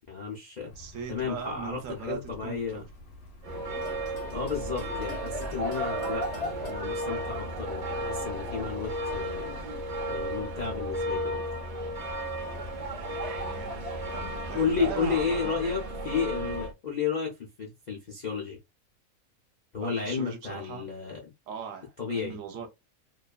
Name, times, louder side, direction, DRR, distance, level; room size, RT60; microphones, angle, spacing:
voice 1, 0.1-0.7 1.1-2.8 4.3-9.6 10.1-11.4 14.5-18.6 19.7-21.3 22.0-22.4, left 6 dB, 60° left, 0.4 m, -32 dB
sound 1, 0.7-6.7, left 1 dB, 80° left, 1.2 m, -50 dB
voice 2, 0.8-2.9 13.4-13.8 14.1-15.7 19.8-20.9 21.5-22.7, right 7 dB, 70° right, 0.9 m, -39 dB
sound 2, 3.4-16.7, right 1 dB, 40° right, 0.6 m, -34 dB
2.7 x 2.4 x 2.2 m
omnidirectional pair, 1.6 m